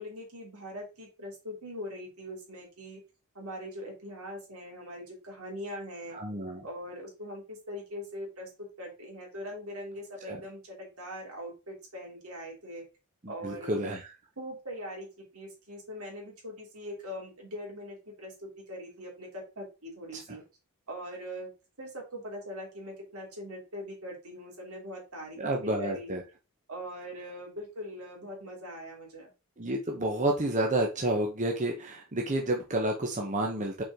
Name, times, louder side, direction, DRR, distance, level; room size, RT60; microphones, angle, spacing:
voice 1, 0.0-3.0 3.3-6.2 6.6-12.8 13.3-13.8 14.4-20.4 20.9-21.5 21.8-26.2 26.7-29.3, equal, 75° right, 0 dB, 3.2 m, -41 dB
voice 2, 6.1-6.7 10.3-10.4 13.2-14.1 20.1-20.4 25.4-26.2 29.6-33.8, right 1 dB, 35° right, 1 dB, 1.0 m, -30 dB
6.0 x 4.6 x 3.7 m, 0.29 s
head